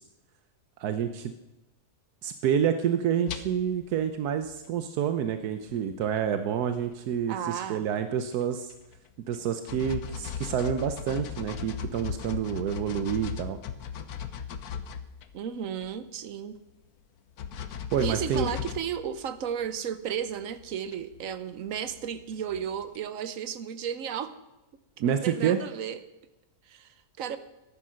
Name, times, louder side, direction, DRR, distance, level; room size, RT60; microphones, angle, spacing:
voice 1, 0.8-1.3 2.2-8.7 9.3-13.6 17.9-18.5 25.0-25.6, right 8 dB, 85° right, 9 dB, 1.3 m, -28 dB
sound 1, 3.3-4.0 4.4-4.6 5.7-5.8 6.0-6.2 6.6-7.1 7.9-8.0 8.3-9.1 9.3-9.4 9.7-15.5 15.8-15.9 17.4-19.8 20.3-23.0, left 7 dB, 75° left, 1.3 m, -38 dB
voice 2, 7.3-7.9 15.3-16.6 18.0-24.3 25.1-26.0 26.7-27.4, right 8 dB, 65° right, 12 dB, 1.2 m, -34 dB
13.5 x 10.5 x 6.3 m, 0.99 s
omnidirectional pair, 1.6 m